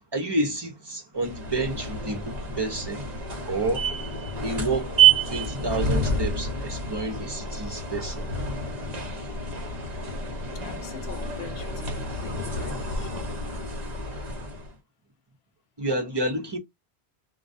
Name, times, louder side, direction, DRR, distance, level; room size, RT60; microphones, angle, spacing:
voice 1, 0.1-3.1 3.5-3.9 4.4-4.9 5.3-8.3 15.8-16.6, right 2 dB, 30° right, 0.6 m, -29 dB
sound 1, 1.2-14.7, right 4 dB, 45° right, 1.0 m, -28 dB
voice 2, 10.5-13.1, left 8 dB, 80° left, 0.9 m, -44 dB
2.2 x 2.2 x 2.5 m
omnidirectional pair, 1.1 m